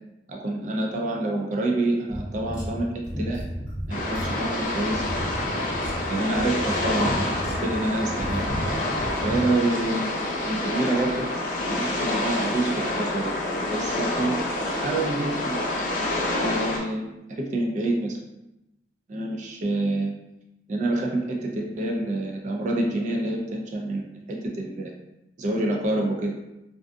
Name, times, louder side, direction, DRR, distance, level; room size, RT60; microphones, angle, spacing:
voice 1, 0.3-3.4 3.9-5.0 6.1-8.5 9.2-10.1 10.4-11.3 11.7-13.3 13.7-14.4 14.7-15.6 16.4-18.2 19.1-20.1 20.7-24.9 25.4-26.3, right 2 dB, 45° right, 0 dB, 0.3 m, -27 dB
sound 1, 2.1-9.5, equal, 5° right, 0.8 m, -33 dB
sound 2, 3.9-16.8, left 1 dB, 45° left, 0.5 m, -28 dB
2.4 x 2.2 x 2.5 m, 0.92 s
head